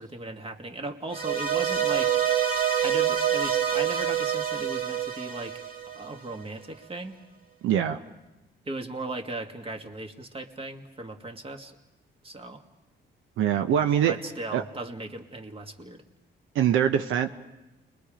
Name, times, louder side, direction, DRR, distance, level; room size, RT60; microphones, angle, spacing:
voice 1, 0.0-2.2 2.8-5.6 5.9-7.2 8.6-11.8 12.2-12.6 14.0-16.0, right 2 dB, 30° right, 5 dB, 1.9 m, -37 dB
sound 1, 1.1-6.4, right 9 dB, 45° right, 2.2 m, -26 dB
voice 2, 7.6-8.0 13.4-14.1 14.5-14.6 16.5-17.3, right 9 dB, 85° right, 7 dB, 0.8 m, -23 dB
30.0 x 22.0 x 5.1 m, 1.0 s
cardioid pair, 90°, 20 cm